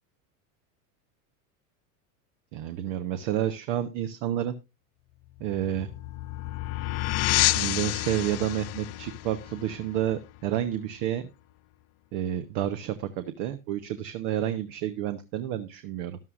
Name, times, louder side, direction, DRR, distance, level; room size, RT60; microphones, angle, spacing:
voice 1, 2.5-4.5 5.4-5.9 7.5-11.3 12.1-16.2, right 11 dB, 55° right, 10 dB, 1.1 m, -30 dB
sound 1, 5.4-10.8, left 19 dB, 35° left, 0.5 m, -29 dB
13.5 x 11.5 x 2.5 m, 0.25 s
supercardioid pair, 115°, 45 cm